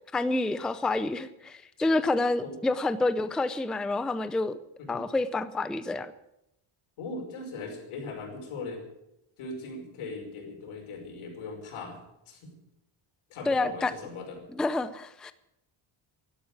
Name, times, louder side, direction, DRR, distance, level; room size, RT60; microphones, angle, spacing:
voice 1, 0.1-4.6 4.9-6.1 13.5-13.9 14.6-15.3, left 2 dB, ahead, 13 dB, 0.4 m, -28 dB
voice 2, 7.0-8.8 9.4-12.0 12.3-12.5 13.3-14.4, left 3 dB, 75° left, 1 dB, 5.4 m, -39 dB
12.0 x 12.0 x 8.9 m, 0.86 s
cardioid pair, 145°, 50 cm